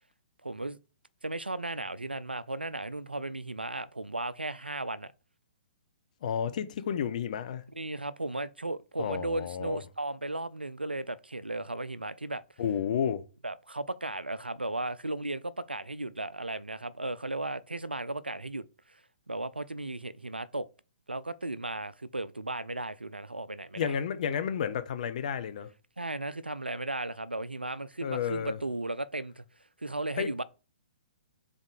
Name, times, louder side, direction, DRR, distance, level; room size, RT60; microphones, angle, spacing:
voice 1, 0.4-0.8 1.2-5.1 7.7-12.4 13.4-19.0 19.3-20.7 21.1-23.9 26.0-29.4 29.8-30.4, right 2 dB, 90° right, 0.4 m, -35 dB
voice 2, 6.2-7.6 9.0-9.8 12.6-13.2 23.8-25.7 28.0-28.6 30.2-30.3, left 8 dB, 50° left, 0.6 m, -31 dB
3.6 x 3.6 x 3.9 m
figure-of-eight pair, 120°, 5 cm